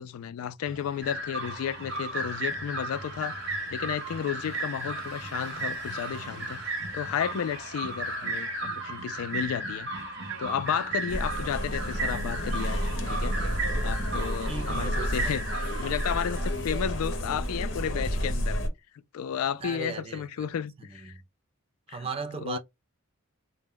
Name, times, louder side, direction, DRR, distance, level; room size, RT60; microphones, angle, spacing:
voice 1, 0.0-3.3 3.7-6.6 6.9-9.9 10.4-12.8 13.1-13.3 13.8-15.4 15.8-18.6 19.1-21.1 21.9-22.1 22.4-22.6, left 8 dB, 85° left, 0.3 m, -32 dB
sound 1, 0.6-18.6, right 2 dB, 75° right, 0.6 m, -45 dB
sound 2, 1.0-16.5, right 2 dB, 55° right, 1.1 m, -35 dB
sound 3, 11.1-18.7, equal, 60° left, 0.7 m, -30 dB
voice 2, 14.4-15.3 19.6-20.5 20.8-21.2 21.9-22.6, right 4 dB, 25° right, 0.3 m, -37 dB
2.1 x 2.1 x 3.5 m
head